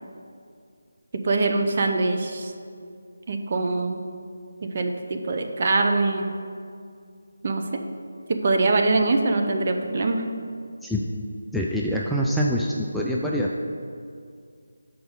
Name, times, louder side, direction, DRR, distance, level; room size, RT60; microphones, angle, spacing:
voice 1, 1.2-2.5 3.3-4.0 4.6-6.3 7.4-7.6 8.3-10.2, right 3 dB, 40° right, 4 dB, 0.6 m, -23 dB
voice 2, 11.5-13.5, equal, ahead, -5 dB, 0.3 m, -25 dB
5.4 x 4.6 x 6.4 m, 2.3 s
figure-of-eight pair, 160°, 0 cm